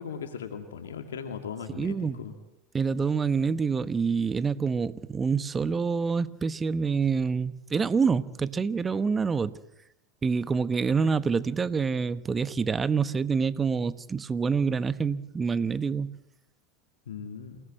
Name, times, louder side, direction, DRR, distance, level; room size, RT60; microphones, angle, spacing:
voice 1, 0.0-2.3 17.1-17.6, left 7 dB, 80° left, 2.3 m, -38 dB
voice 2, 1.8-2.2 2.7-9.6 10.2-16.2, right 5 dB, 20° right, 1.1 m, -27 dB
28.0 x 19.0 x 7.8 m
hypercardioid pair, 90°, 0 cm